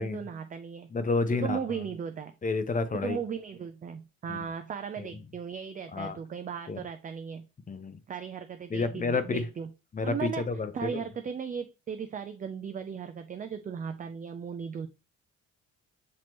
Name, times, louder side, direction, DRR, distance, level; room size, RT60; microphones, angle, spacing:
voice 1, 0.0-0.9 1.3-2.3 2.9-7.5 8.1-9.7 10.0-14.9, right 7 dB, 30° right, 7 dB, 0.4 m, -37 dB
voice 2, 0.9-1.6 2.4-3.2 4.3-4.4 5.9-6.2 6.7-6.8 7.7-8.0 8.7-9.5 9.9-11.0, left 4 dB, 25° left, 12 dB, 0.5 m, -30 dB
6.0 x 2.9 x 3.0 m, 0.31 s
cardioid pair, 90°, 30 cm